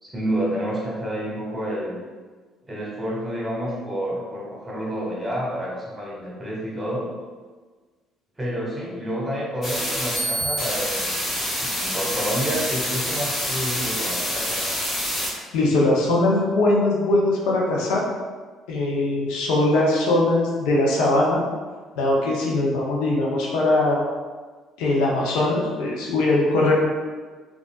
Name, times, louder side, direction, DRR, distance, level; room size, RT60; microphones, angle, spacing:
voice 1, 0.0-2.0 2.6-7.1 8.4-14.7, equal, 20° right, -5 dB, 1.3 m, -29 dB
sound 1, 9.6-15.3, equal, 40° left, 1.3 m, -26 dB
voice 2, 15.5-18.1 18.7-21.4 22.0-24.0 24.8-26.7, left 2 dB, 80° left, -3 dB, 0.6 m, -21 dB
3.6 x 2.4 x 2.3 m, 1.4 s
hypercardioid pair, 65°, 0 cm